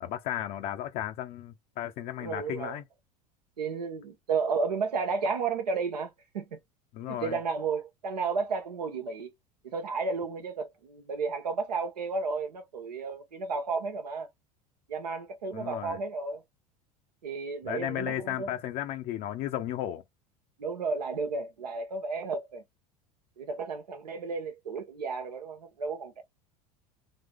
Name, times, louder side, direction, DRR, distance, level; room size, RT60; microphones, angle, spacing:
voice 1, 0.0-2.8 6.9-7.4 15.5-16.0 17.6-20.0, left 12 dB, 50° left, 0.7 m, -34 dB
voice 2, 2.2-2.8 3.6-6.6 7.1-9.3 9.6-14.3 14.9-16.4 17.2-18.5 20.6-22.6 23.4-26.2, right 4 dB, 80° right, 1.0 m, -33 dB
3.8 x 2.8 x 3.4 m
hypercardioid pair, 80°, 20 cm